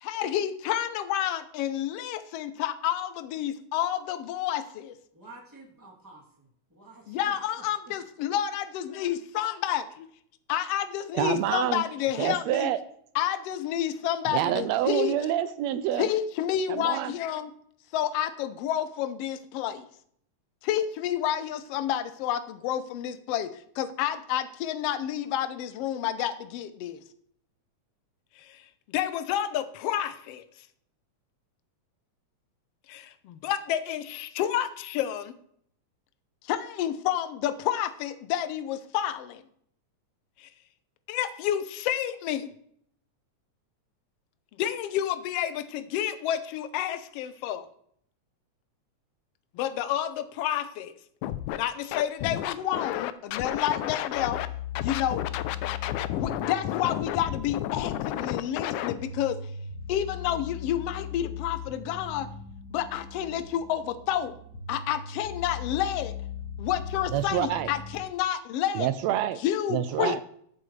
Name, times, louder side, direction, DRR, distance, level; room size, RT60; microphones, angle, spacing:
voice 1, 0.0-4.9 7.1-9.8 10.5-12.7 13.1-15.1 16.0-17.5 17.9-19.9 20.6-27.0 28.4-28.6 28.9-30.4 32.9-35.3 36.4-39.4 40.4-40.5 41.1-42.5 44.6-47.6 49.5-50.9 51.5-54.4 54.8-55.2 56.1-59.4 59.9-62.3 62.7-64.4 64.7-66.2 66.6-68.9 69.4-70.2, left 11 dB, 70° left, 11 dB, 1.5 m, -29 dB
voice 2, 5.1-7.9, right 2 dB, 5° right, -2 dB, 2.5 m, -51 dB
voice 3, 11.1-11.8 12.2-12.8 14.3-16.1 16.7-17.1 67.1-67.7 68.7-69.4 69.7-70.2, right 12 dB, 80° right, 13 dB, 1.6 m, -27 dB
Scratching (performance technique), 51.2-51.6 51.9-54.5 54.8-58.9, left 13 dB, 90° left, 2.1 m, -31 dB
sound 1, 54.1-68.0, left 7 dB, 25° left, 3.9 m, -39 dB
14.0 x 8.5 x 3.2 m, 0.66 s
omnidirectional pair, 3.4 m